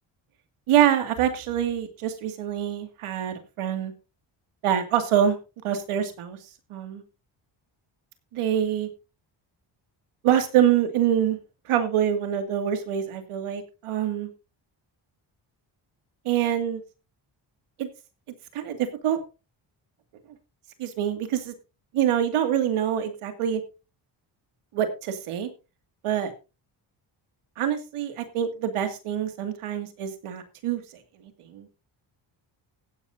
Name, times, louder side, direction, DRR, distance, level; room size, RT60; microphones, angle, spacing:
voice 1, 0.7-3.9 4.6-5.4 5.6-6.4 6.7-7.0 8.3-8.9 10.2-11.4 11.7-14.3 16.3-16.8 17.8-17.9 18.5-18.8 19.0-19.2 20.8-21.5 21.9-23.6 24.7-25.5 26.0-26.3 27.6-30.8 31.5-31.8, right 10 dB, 90° right, 7 dB, 2.3 m, -25 dB
15.5 x 11.5 x 2.7 m, 0.30 s
cardioid pair, 65°, 50 cm